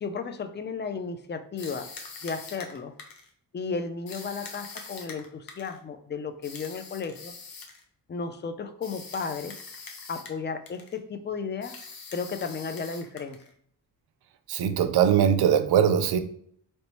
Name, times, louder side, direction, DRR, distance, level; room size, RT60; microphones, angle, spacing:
voice 1, 0.0-1.9 2.2-2.9 3.5-7.3 8.1-9.5 10.1-11.7 12.1-13.4, left 5 dB, 25° left, 0.4 m, -34 dB
sound 1, 1.6-3.3 4.1-5.8 6.4-7.8 8.8-10.4 10.7-11.0 11.6-13.5, left 4 dB, 60° left, 0.8 m, -43 dB
voice 2, 14.5-16.2, right 8 dB, 70° right, 0.5 m, -21 dB
3.1 x 3.0 x 3.0 m
cardioid pair, 65°, 40 cm